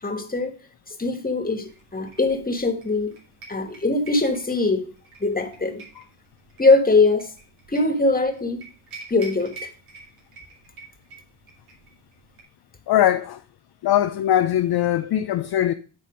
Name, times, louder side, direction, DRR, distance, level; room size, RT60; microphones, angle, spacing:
voice 1, 0.0-0.5 0.9-3.1 3.5-4.9 5.2-5.8 6.6-7.3 7.7-8.6 9.1-9.7, left 3 dB, 15° left, 1.7 m, -22 dB
sound 1, 1.6-12.4, right 3 dB, 75° right, 2.5 m, -47 dB
voice 2, 12.9-13.4 13.8-15.7, left 11 dB, 50° left, 0.6 m, -21 dB
9.4 x 4.1 x 5.1 m
hypercardioid pair, 45°, 50 cm